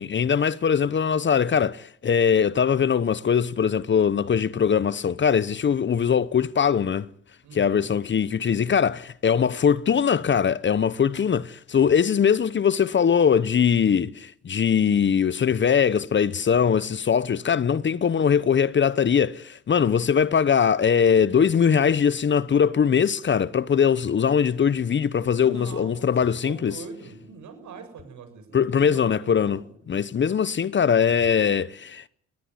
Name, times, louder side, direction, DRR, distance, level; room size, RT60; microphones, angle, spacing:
voice 1, 0.0-7.1 7.5-26.8 28.5-29.6 29.9-32.1, left 7 dB, 40° left, 0.9 m, -21 dB
voice 2, 7.4-7.8 25.4-26.1 26.4-29.8, right 5 dB, 70° right, 7.3 m, -43 dB
20.0 x 18.5 x 10.0 m
cardioid pair, 90°, 30 cm